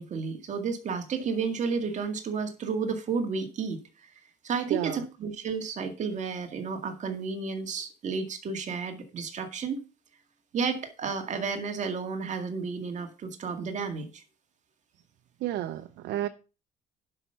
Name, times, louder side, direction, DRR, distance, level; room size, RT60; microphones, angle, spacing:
voice 1, 0.0-3.8 4.4-9.8 10.5-14.2, right 5 dB, 45° right, 2.0 m, -32 dB
voice 2, 4.7-5.0 15.4-16.3, right 13 dB, 80° right, 0.9 m, -31 dB
10.5 x 5.9 x 5.6 m
cardioid pair, 110°, 17 cm